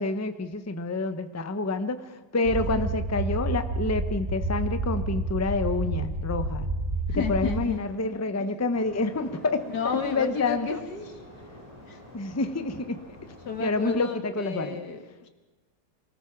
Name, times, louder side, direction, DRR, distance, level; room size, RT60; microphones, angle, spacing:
voice 1, 0.0-6.7 7.1-10.8 12.1-13.0 13.6-14.8, left 3 dB, 15° left, 9 dB, 0.7 m, -28 dB
voice 2, 2.4-2.8 7.1-8.5 9.7-11.2 11.9-12.0 13.5-15.3, left 6 dB, 90° left, 6 dB, 2.4 m, -32 dB
sound 1, 2.4-7.6, right 2 dB, 40° right, 3.5 m, -29 dB
sound 2, 8.7-13.9, equal, 20° right, 6.8 m, -48 dB
24.0 x 19.0 x 6.0 m, 1.2 s
omnidirectional pair, 1.7 m